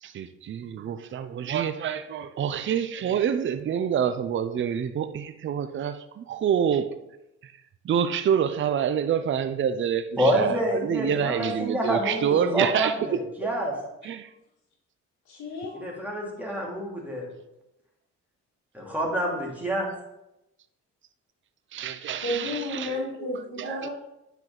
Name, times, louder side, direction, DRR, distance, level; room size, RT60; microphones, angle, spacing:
voice 1, 0.0-6.9 7.4-7.5 7.8-13.2 14.0-14.3 21.7-23.0 23.6-23.9, right 8 dB, 40° right, 0.5 m, -27 dB
voice 2, 10.2-13.7 15.7-17.3 18.7-19.9, right 1 dB, 5° right, 2.6 m, -27 dB
voice 3, 15.3-15.8 22.2-23.9, left 1 dB, 65° left, 2.1 m, -32 dB
9.7 x 4.6 x 3.9 m
cardioid pair, 90°, 30 cm